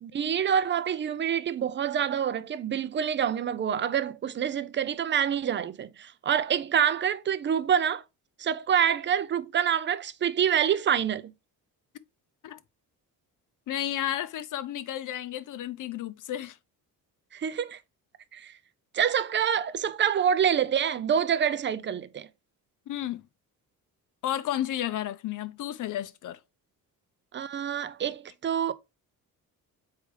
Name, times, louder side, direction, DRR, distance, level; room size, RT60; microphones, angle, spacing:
voice 1, 0.0-8.0 8.4-11.3 17.3-17.8 18.3-18.5 18.9-22.3 27.3-28.7, right 8 dB, 30° right, 0.5 m, -26 dB
voice 2, 13.7-16.6 22.9-23.2 24.2-26.4, left 12 dB, 60° left, 0.7 m, -32 dB
6.6 x 4.8 x 3.3 m
cardioid pair, 155°, 36 cm